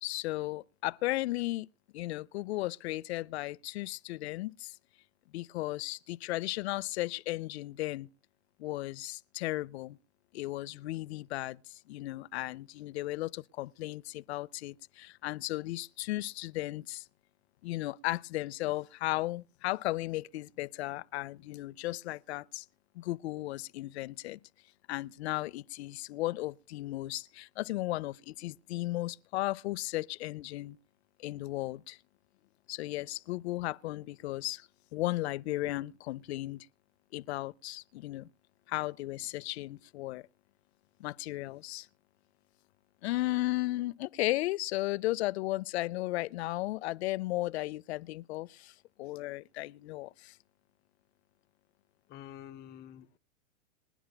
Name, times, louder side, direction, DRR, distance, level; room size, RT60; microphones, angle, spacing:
voice 1, 0.0-1.7 1.9-4.7 5.3-8.1 8.6-10.0 10.3-17.1 17.6-22.7 23.0-24.4 24.9-30.8 31.2-32.0 32.7-36.7 37.1-38.3 38.7-40.3 41.0-41.9 43.0-50.4, left 18 dB, 55° left, 0.6 m, -35 dB
voice 2, 52.1-53.2, left 11 dB, 25° left, 1.0 m, -48 dB
26.5 x 10.0 x 2.2 m
hypercardioid pair, 120°, 40 cm